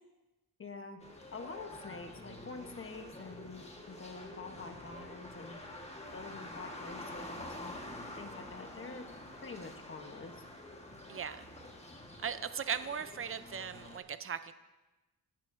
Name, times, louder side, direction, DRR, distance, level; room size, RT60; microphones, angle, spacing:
voice 1, 0.6-1.0 1.3-5.6 6.1-7.8 8.2-9.1 9.4-10.4, left 4 dB, 35° left, 6 dB, 1.1 m, -46 dB
sound 1, 1.0-14.0, left 1 dB, 15° left, 1.5 m, -48 dB
voice 2, 11.1-11.5 12.2-14.5, right 7 dB, 35° right, 12 dB, 0.6 m, -38 dB
15.5 x 11.5 x 2.7 m, 1.1 s
wide cardioid pair, 110°, 38 cm